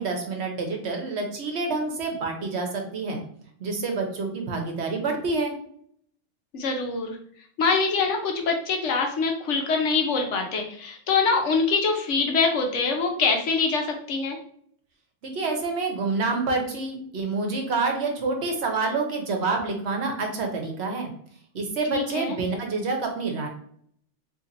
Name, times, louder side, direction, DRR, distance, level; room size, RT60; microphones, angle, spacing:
voice 1, 0.0-3.2 3.6-5.5 15.2-21.1 21.5-23.5, right 3 dB, 65° right, 2 dB, 1.0 m, -27 dB
voice 2, 6.5-7.2 7.6-14.4 21.9-22.4, left 4 dB, 80° left, 3 dB, 1.1 m, -24 dB
2.9 x 2.8 x 3.8 m, 0.62 s
omnidirectional pair, 1.2 m